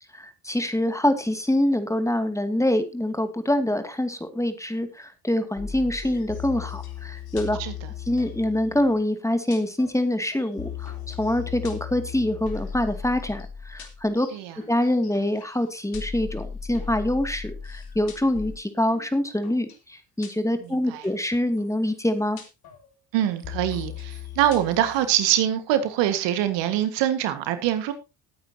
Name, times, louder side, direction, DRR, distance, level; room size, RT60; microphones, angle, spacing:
voice 1, 0.2-7.6 8.1-14.3 14.7-22.4, left 1 dB, 5° left, 2.4 m, -25 dB
sound 1, 5.6-9.0 9.5-10.0 10.3-15.5 15.9-18.6 18.9-19.1 19.4-19.8 20.2-20.5 21.0-21.2 21.6-21.7 21.8-22.0 22.4-22.9 23.2-25.1, left 7 dB, 55° left, 3.5 m, -37 dB
voice 2, 20.6-21.0 23.1-27.9, right 11 dB, 70° right, 1.8 m, -24 dB
19.0 x 9.4 x 2.9 m
hypercardioid pair, 55°, 45 cm